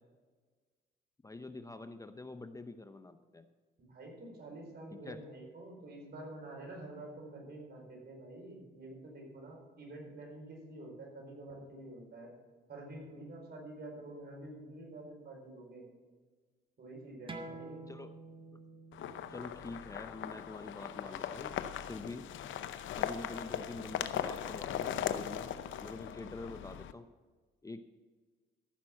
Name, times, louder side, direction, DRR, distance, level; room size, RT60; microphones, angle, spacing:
voice 1, 1.2-3.5 5.0-5.2 17.9-18.1 19.3-21.6 21.9-22.2 23.0-25.5 25.8-27.1 27.6-27.8, left 2 dB, 15° left, 9 dB, 0.6 m, -46 dB
voice 2, 3.8-12.3 12.7-15.8 16.8-17.8, right 2 dB, 55° right, -1 dB, 4.7 m, -48 dB
sound 1, 17.3-22.5, right 2 dB, 25° right, 1.3 m, -51 dB
sound 2, 18.9-26.9, left 10 dB, 75° left, 0.7 m, -39 dB
14.5 x 6.0 x 7.3 m, 1.4 s
cardioid pair, 90°, 20 cm